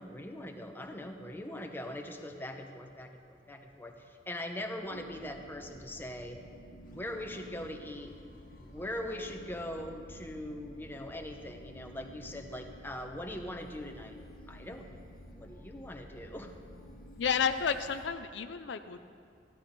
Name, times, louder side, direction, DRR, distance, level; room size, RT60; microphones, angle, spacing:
voice 1, 0.0-6.4 6.9-8.1 8.6-14.2 14.5-15.0 15.4-16.5, left 1 dB, 10° left, 3 dB, 1.0 m, -41 dB
sound 1, 4.9-18.1, equal, 50° left, 1.5 m, -51 dB
voice 2, 17.2-19.0, left 6 dB, 70° left, 9 dB, 0.5 m, -31 dB
15.0 x 12.0 x 5.2 m, 2.3 s
head